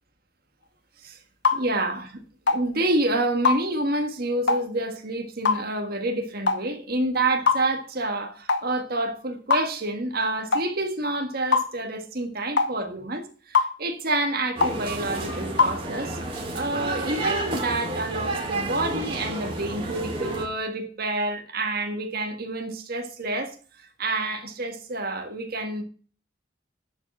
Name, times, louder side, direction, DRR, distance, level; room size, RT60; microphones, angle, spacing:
sound 1, 1.4-1.6 2.5-2.6 3.4-3.6 4.5-4.7 5.4-5.6 6.5-6.6 7.5-7.6 8.5-8.7 9.5-9.7 10.5-10.7 11.5-11.7 12.6-12.7 13.5-13.7 14.6-14.8 15.6-15.8, left 4 dB, 65° left, 0.9 m, -21 dB
voice 1, 1.5-2.2 2.5-16.2 16.5-23.5 24.0-25.8, right 2 dB, 55° right, 1.7 m, -28 dB
sound 2, 14.6-20.5, right 2 dB, 30° right, 2.4 m, -31 dB
10.5 x 5.0 x 6.1 m
head